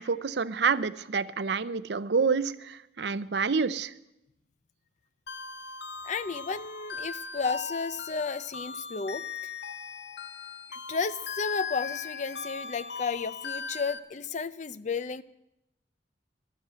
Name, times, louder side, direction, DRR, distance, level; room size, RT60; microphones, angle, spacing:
voice 1, 0.0-3.9, right 5 dB, 60° right, 16 dB, 0.6 m, -28 dB
sound 1, 5.3-14.0, left 5 dB, 65° left, 0.9 m, -38 dB
voice 2, 6.0-9.5 10.7-15.2, left 5 dB, 40° left, 16 dB, 0.5 m, -33 dB
12.5 x 12.0 x 9.1 m, 0.87 s
head